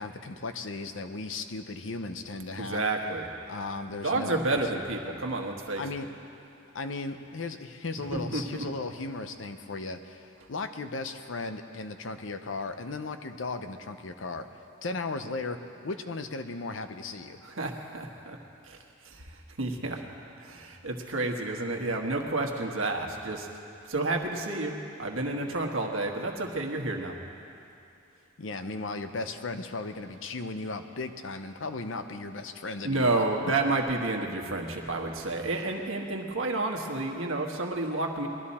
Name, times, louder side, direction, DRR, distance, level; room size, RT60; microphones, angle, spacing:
voice 1, 0.0-2.8 3.5-4.6 5.8-6.1 6.7-14.5 14.8-15.6 15.8-17.4 28.4-33.2, left 3 dB, 70° left, 8 dB, 0.8 m, -36 dB
voice 2, 2.6-3.2 4.0-5.8 7.9-8.6 17.4-18.4 18.7-18.8 19.0-20.0 20.4-23.5 23.9-27.1 32.8-38.3, right 2 dB, 85° right, 2 dB, 1.4 m, -30 dB
20.5 x 12.5 x 4.3 m, 2.7 s
head